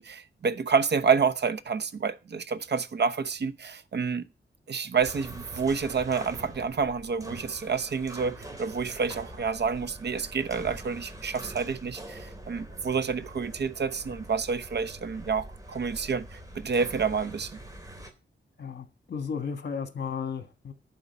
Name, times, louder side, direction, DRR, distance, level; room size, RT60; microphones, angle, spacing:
voice 1, 0.0-4.3 4.7-17.5, right 5 dB, 60° right, 1.0 m, -28 dB
sound 1, 5.0-18.1, right 1 dB, 15° right, 2.6 m, -44 dB
voice 2, 18.6-20.7, left 6 dB, 55° left, 1.6 m, -34 dB
11.5 x 4.8 x 8.5 m
wide cardioid pair, 95°, 20 cm